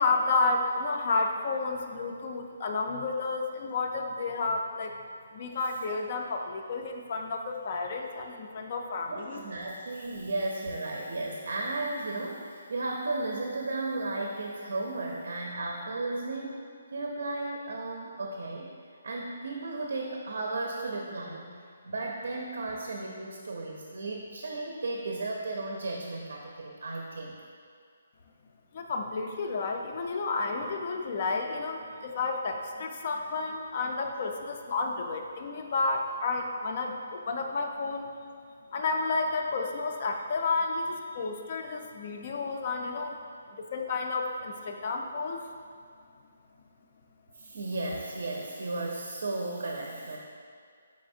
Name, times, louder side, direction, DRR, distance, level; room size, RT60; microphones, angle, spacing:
voice 1, 0.0-4.9 5.3-9.4 28.7-38.1 38.7-43.2 43.7-45.4, left 3 dB, 30° left, 3 dB, 0.3 m, -31 dB
voice 2, 9.1-16.5 16.9-18.7 19.0-21.5 21.8-27.4 47.4-50.2, right 2 dB, 65° right, 0 dB, 0.5 m, -34 dB
4.8 x 4.1 x 2.6 m, 2.2 s
hypercardioid pair, 175°, 0 cm